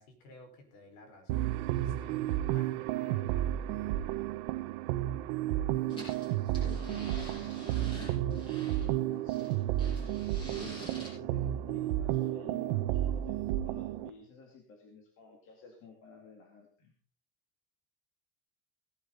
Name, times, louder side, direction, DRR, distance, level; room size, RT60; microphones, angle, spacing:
voice 1, 0.0-3.6, left 1 dB, 60° left, 4 dB, 4.9 m, -56 dB
sound 1, 1.3-14.1, right 13 dB, 85° right, 1.0 m, -32 dB
voice 2, 5.8-9.5 10.6-16.9, left 5 dB, 40° left, 2 dB, 2.3 m, -52 dB
sound 2, 5.9-8.9 9.3-11.1, equal, 15° left, 7.2 m, -48 dB
17.5 x 11.5 x 4.0 m, 0.42 s
cardioid pair, 180°, 33 cm